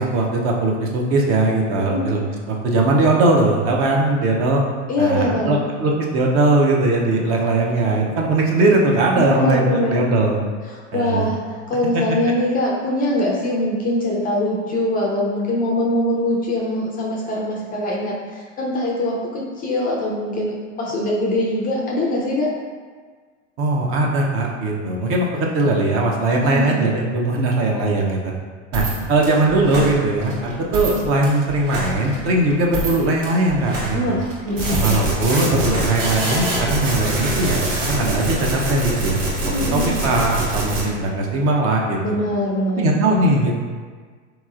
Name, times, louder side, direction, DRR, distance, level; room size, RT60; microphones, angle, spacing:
voice 1, 0.0-2.2 2.5-4.6 5.0-10.4 10.9-11.3 11.9-12.0 23.6-28.3 28.7-34.2 34.8-39.2 39.7-42.0 42.8-43.6, right 2 dB, 35° right, -1 dB, 0.6 m, -19 dB
voice 2, 4.9-5.6 9.1-10.0 10.7-11.4 11.7-22.5 26.3-26.8 33.9-35.1 39.4-39.9 42.0-43.0, left 1 dB, 25° left, -3 dB, 0.4 m, -23 dB
sound 1, 28.7-36.6, right 1 dB, 55° right, 1.3 m, -30 dB
sound 2, 34.6-40.8, right 1 dB, 85° right, 1.0 m, -23 dB
3.8 x 2.9 x 2.4 m, 1.5 s
hypercardioid pair, 105°, 37 cm